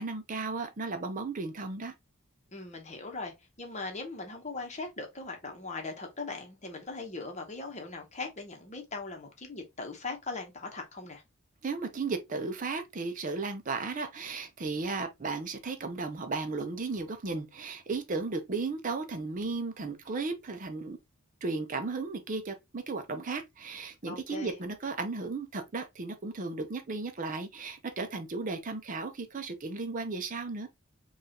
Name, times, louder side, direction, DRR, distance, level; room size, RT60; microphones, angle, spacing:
voice 1, 0.0-1.9 11.6-21.0 21.4-30.7, right 3 dB, 35° right, 0.5 m, -35 dB
voice 2, 2.5-11.2 24.1-24.6, left 3 dB, 30° left, 0.9 m, -40 dB
5.3 x 2.4 x 2.8 m
head